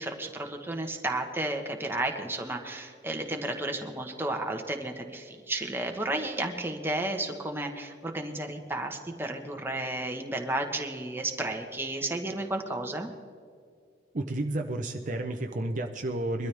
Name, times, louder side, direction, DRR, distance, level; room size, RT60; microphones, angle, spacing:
voice 1, 0.0-13.1, right 2 dB, 10° right, 3 dB, 1.3 m, -32 dB
voice 2, 14.1-16.5, right 1 dB, 45° right, 4 dB, 0.7 m, -31 dB
22.5 x 13.0 x 3.5 m, 2.2 s
head